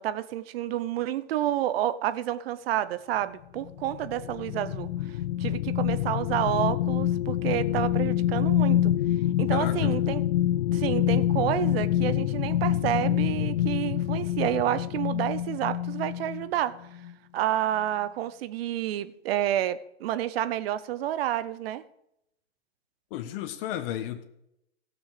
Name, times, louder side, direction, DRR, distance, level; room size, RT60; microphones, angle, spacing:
voice 1, 0.0-4.9 5.4-8.9 9.4-10.2 10.7-16.7 17.3-21.8, right 12 dB, 60° right, 14 dB, 0.9 m, -29 dB
sound 1, 3.6-16.5 17.0-17.1, left 12 dB, 70° left, 0.6 m, -26 dB
voice 2, 9.5-9.9 23.1-24.2, left 11 dB, 55° left, 6 dB, 1.4 m, -33 dB
16.0 x 6.5 x 4.9 m, 0.80 s
hypercardioid pair, 115°, 33 cm